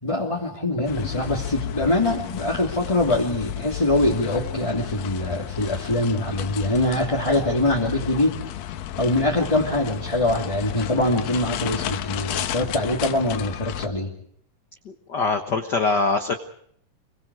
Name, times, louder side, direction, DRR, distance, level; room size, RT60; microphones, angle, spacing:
voice 1, 0.0-8.4 9.0-14.1, left 1 dB, 10° left, -3 dB, 2.3 m, -23 dB
sound 1, 0.9-13.9, left 11 dB, 85° left, 2.8 m, -32 dB
voice 2, 14.8-16.3, left 4 dB, 60° left, 6 dB, 1.1 m, -23 dB
27.0 x 23.5 x 4.9 m, 0.68 s
omnidirectional pair, 4.0 m